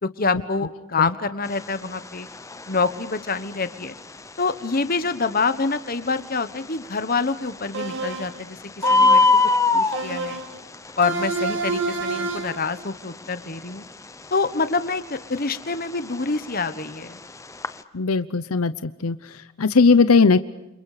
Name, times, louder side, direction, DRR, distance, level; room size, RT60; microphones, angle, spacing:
voice 1, 0.0-2.3 2.7-4.0 4.4-8.6 8.9-9.3 9.7-10.4 11.0-13.8 14.3-17.2, left 4 dB, 40° left, 11 dB, 1.3 m, -26 dB
Bird, 1.4-17.8, left 3 dB, 15° left, 0.9 m, -26 dB
sound 1, 7.7-8.4 8.8-9.5 9.9-10.6 11.0-12.6, right 3 dB, 55° right, 2.3 m, -28 dB
voice 2, 17.9-19.2 19.6-20.4, left 4 dB, 80° left, 13 dB, 0.8 m, -18 dB
30.0 x 27.5 x 5.0 m, 0.96 s
head